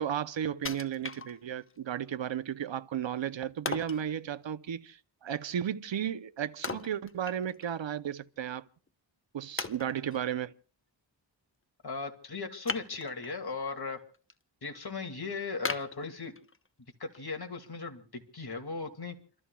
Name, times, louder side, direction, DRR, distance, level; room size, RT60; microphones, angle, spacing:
voice 1, 0.0-8.6 9.3-10.5, right 9 dB, 70° right, 0.7 m, -34 dB
Wood, 0.7-1.8 2.2-2.3 3.7-4.1 6.6-7.8 8.1-8.2 8.9-9.0 9.6-10.3 12.6-13.4 13.9-14.3 14.8-14.9 15.7-16.7 17.1-17.2, left 4 dB, 30° left, 0.8 m, -38 dB
voice 2, 11.8-14.0 14.6-16.3 17.0-19.2, left 4 dB, 55° left, 2.3 m, -37 dB
29.0 x 13.5 x 2.3 m
wide cardioid pair, 55°, 46 cm